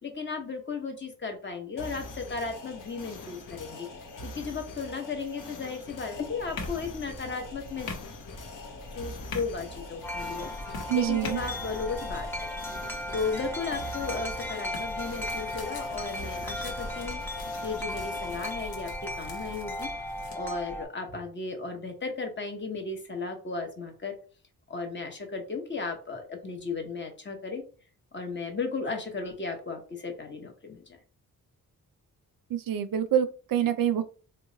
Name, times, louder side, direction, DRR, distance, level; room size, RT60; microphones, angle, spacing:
voice 1, 0.0-3.9 4.2-7.9 8.9-10.5 10.9-12.5 13.1-17.2 17.6-19.9 20.3-24.1 24.7-27.6 28.1-30.8, left 4 dB, 30° left, 3 dB, 0.9 m, -35 dB
sound 1, 1.8-18.6, left 2 dB, 60° left, 0.8 m, -44 dB
sound 2, 6.1-20.4, left 2 dB, 85° left, 0.9 m, -43 dB
Wind chime, 10.0-20.9, left 1 dB, 5° left, 0.8 m, -36 dB
voice 2, 10.9-11.4 32.5-34.0, right 10 dB, 70° right, 11 dB, 0.5 m, -26 dB
3.0 x 2.2 x 3.8 m, 0.38 s
cardioid pair, 90°, 36 cm